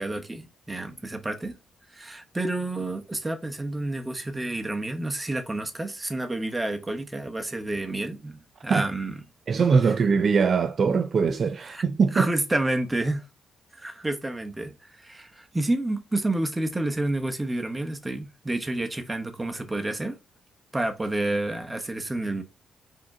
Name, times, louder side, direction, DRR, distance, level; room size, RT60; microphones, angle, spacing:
voice 1, 0.0-1.6 1.9-9.1 11.7-11.8 12.1-13.2 13.7-20.2 20.7-22.4, right 2 dB, 15° right, 0.9 m, -29 dB
voice 2, 9.5-12.3, right 5 dB, 50° right, 0.4 m, -22 dB
5.0 x 2.9 x 3.6 m
cardioid pair, 95°, 0 cm